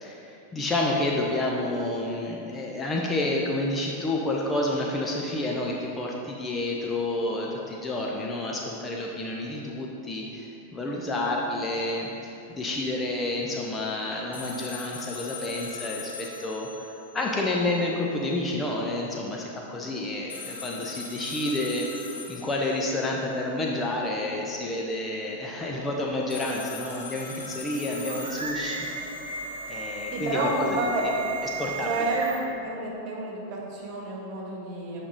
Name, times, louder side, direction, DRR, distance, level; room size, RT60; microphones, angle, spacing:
voice 1, 0.0-16.9 17.1-21.9 22.3-28.9 29.3-29.4 29.7-30.8 31.4-31.9, left 2 dB, 15° left, -2 dB, 0.8 m, -29 dB
sound 1, 14.3-17.4 17.7-17.8 20.3-23.3 26.3-29.3, left 4 dB, 70° left, 1.5 m, -41 dB
sound 2, 27.3-32.6, right 3 dB, 70° right, 1.1 m, -35 dB
voice 2, 30.1-31.0 31.9-32.3 32.6-35.0, right 2 dB, 40° right, -3 dB, 1.9 m, -30 dB
8.5 x 5.5 x 4.0 m, 2.7 s
figure-of-eight pair, 90°, 0 cm